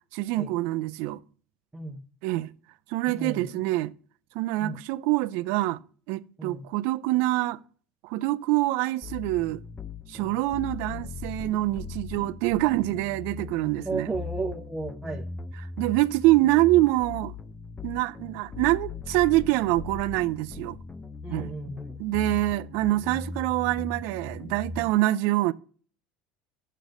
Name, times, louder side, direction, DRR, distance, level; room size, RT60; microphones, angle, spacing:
voice 1, 0.1-1.2 2.2-2.5 2.9-3.9 4.3-5.8 6.1-7.6 8.0-9.6 10.1-14.1 15.8-17.3 17.8-20.8 21.3-21.5 22.0-25.5, right 17 dB, 70° right, 0.4 m, -25 dB
voice 2, 3.1-3.6 4.6-4.8 6.4-6.6 13.8-15.3 21.2-22.0, right 3 dB, 10° right, 0.9 m, -34 dB
sound 1, 9.0-25.0, left 4 dB, 20° left, 0.6 m, -39 dB
6.7 x 6.4 x 6.0 m
hypercardioid pair, 80°, 4 cm